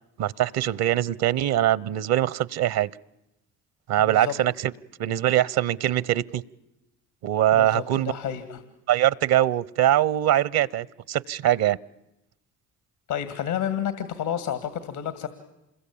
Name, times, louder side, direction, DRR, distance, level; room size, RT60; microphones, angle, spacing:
voice 1, 0.2-2.9 3.9-4.7 5.0-6.4 7.2-8.1 8.9-11.8, right 12 dB, 70° right, 23 dB, 0.9 m, -22 dB
voice 2, 4.0-4.3 7.5-8.6 13.1-15.3, left 9 dB, 80° left, 12 dB, 2.2 m, -30 dB
27.5 x 21.5 x 8.6 m, 0.90 s
hypercardioid pair, 50°, 38 cm